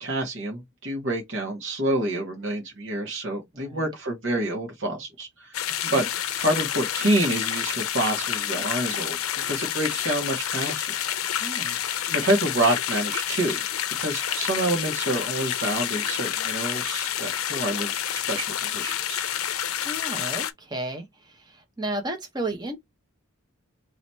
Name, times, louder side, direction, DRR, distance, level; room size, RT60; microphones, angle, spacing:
voice 1, 0.0-5.6 5.9-6.0 6.4-9.2 9.4-10.9 11.7-11.8 12.1-13.6 14.0-19.2, right 1 dB, 65° right, 1.5 m, -27 dB
voice 2, 3.5-3.9 5.8-6.1 11.4-11.8 19.8-22.8, right 1 dB, 20° right, 0.9 m, -33 dB
sound 1, 5.5-20.5, left 10 dB, 90° left, 0.6 m, -29 dB
3.1 x 2.9 x 4.1 m
head